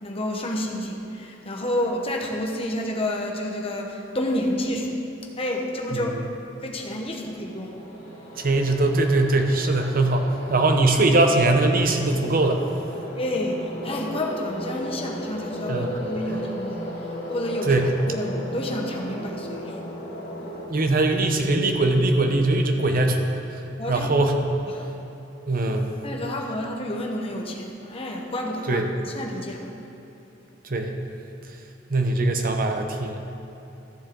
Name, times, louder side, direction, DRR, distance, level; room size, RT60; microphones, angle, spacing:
voice 1, 0.0-5.0 5.4-6.2 6.6-7.8 13.1-16.9 17.3-17.8 18.1-19.8 23.8-24.1 24.7-24.9 26.0-29.6, left 1 dB, 30° left, 0 dB, 1.1 m, -29 dB
sound 1, 7.1-20.7, equal, 60° left, 2.2 m, -35 dB
voice 2, 8.4-12.6 15.7-15.9 17.6-17.9 20.7-23.6 23.9-24.4 25.5-26.0 28.7-28.9 30.6-31.0 31.9-33.2, right 2 dB, 50° right, 4 dB, 0.9 m, -21 dB
14.0 x 7.2 x 3.8 m, 2.9 s
head